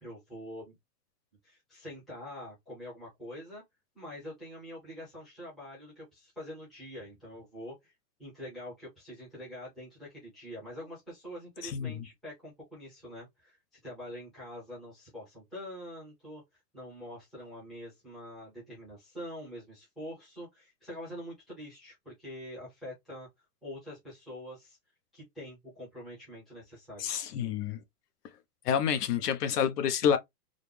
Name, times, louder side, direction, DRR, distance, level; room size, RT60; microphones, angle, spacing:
voice 1, 0.0-0.7 1.4-3.6 3.9-7.9 8.2-23.3 23.6-24.8 25.1-27.1, equal, ahead, 0.5 m, -45 dB
voice 2, 11.6-12.0 27.0-27.8 28.6-30.2, left 8 dB, 80° left, 0.9 m, -28 dB
3.9 x 2.0 x 3.2 m
supercardioid pair, 180°, 46 cm